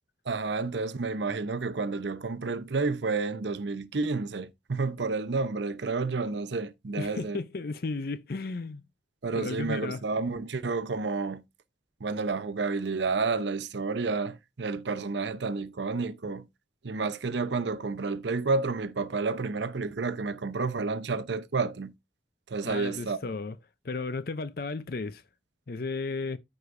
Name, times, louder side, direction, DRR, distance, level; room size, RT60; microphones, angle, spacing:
voice 1, 0.3-7.4 9.2-11.4 12.0-16.5 16.8-21.9 22.5-23.2, right 4 dB, 70° right, 0.7 m, -30 dB
voice 2, 7.0-8.8 9.3-10.0 22.6-23.6 23.8-25.2 25.7-26.4, left 3 dB, 50° left, 0.5 m, -34 dB
14.0 x 4.9 x 2.6 m
head